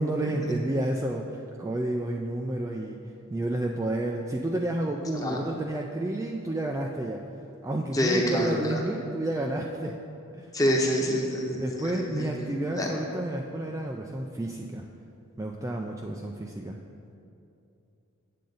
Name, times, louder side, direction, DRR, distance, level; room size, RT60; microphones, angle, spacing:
voice 1, 0.0-3.0 3.3-7.2 7.6-10.0 10.3-10.5 11.6-14.9 15.4-16.8, right 1 dB, 15° right, 1 dB, 0.3 m, -30 dB
voice 2, 7.9-8.8 10.5-12.3 12.7-12.9, equal, 15° left, 0 dB, 0.9 m, -26 dB
8.5 x 7.5 x 3.9 m, 2.7 s
head